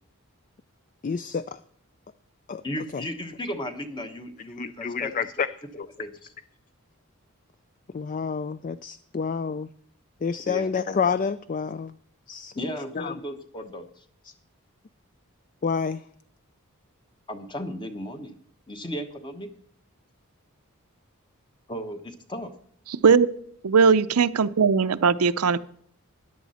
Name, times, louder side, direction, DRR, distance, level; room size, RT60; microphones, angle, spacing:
voice 1, 1.0-1.4 2.5-2.6 2.9-3.0 4.6-5.5 5.8-5.9 7.9-9.7 10.2-11.9 12.3-12.5 13.0-13.1 15.6-16.0, left 5 dB, 35° left, 15 dB, 0.4 m, -28 dB
voice 2, 2.6-5.1 5.4-5.5 6.0-6.3 10.4-10.7 12.6-14.0 17.3-18.4 18.7-19.5 21.7-22.5, equal, 20° left, 7 dB, 1.1 m, -35 dB
voice 3, 23.6-25.6, right 5 dB, 90° right, 14 dB, 0.6 m, -19 dB
14.0 x 10.5 x 4.2 m, 0.64 s
head